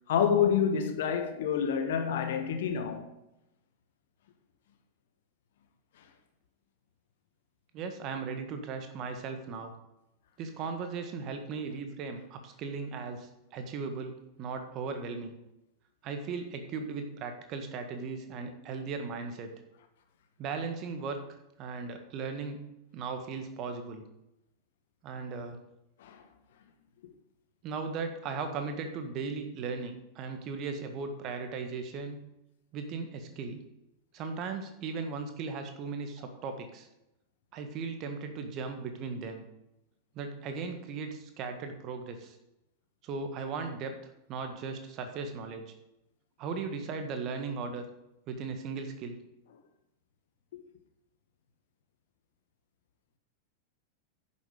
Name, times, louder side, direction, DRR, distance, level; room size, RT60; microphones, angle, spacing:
voice 1, 0.1-3.1 26.0-26.2, left 7 dB, 55° left, 1.3 m, -28 dB
voice 2, 7.7-9.7 10.4-15.3 16.0-19.5 20.4-21.2 21.6-24.0 25.0-25.6 27.6-32.3 32.7-33.6 34.1-36.9 37.5-39.5 40.1-42.4 43.0-43.9 44.3-45.7 46.4-47.8 48.3-49.2, right 4 dB, 35° right, 1.6 m, -37 dB
10.5 x 7.3 x 5.1 m
figure-of-eight pair, 90°, 0 cm